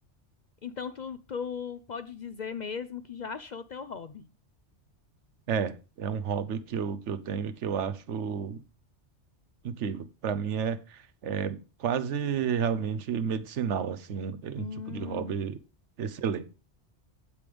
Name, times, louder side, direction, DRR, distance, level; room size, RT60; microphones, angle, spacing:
voice 1, 0.6-4.3 14.5-15.4, left 6 dB, 55° left, 0.5 m, -38 dB
voice 2, 5.5-8.6 9.6-10.8 11.2-15.6 16.0-16.4, right 7 dB, 80° right, 1.1 m, -31 dB
15.5 x 5.3 x 3.4 m
omnidirectional pair, 1.2 m